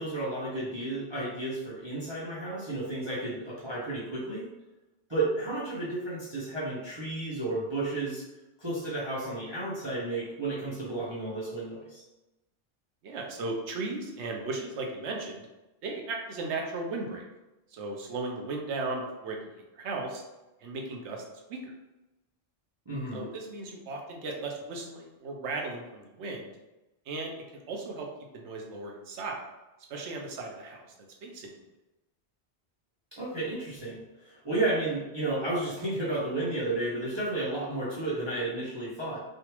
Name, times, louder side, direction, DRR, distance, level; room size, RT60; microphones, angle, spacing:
voice 1, 0.0-4.5 5.1-8.3 8.6-12.0 22.9-23.3 33.1-39.2, right 2 dB, 30° right, -8 dB, 0.7 m, -32 dB
voice 2, 13.0-15.4 15.8-17.2 17.7-19.4 19.7-20.2 20.6-21.2 21.5-21.7 23.1-26.5 27.1-27.3 27.7-28.1 28.3-29.4 29.9-30.9 31.2-31.5, right 3 dB, 90° right, 1 dB, 1.0 m, -36 dB
3.3 x 2.4 x 2.9 m, 1.0 s
omnidirectional pair, 1.1 m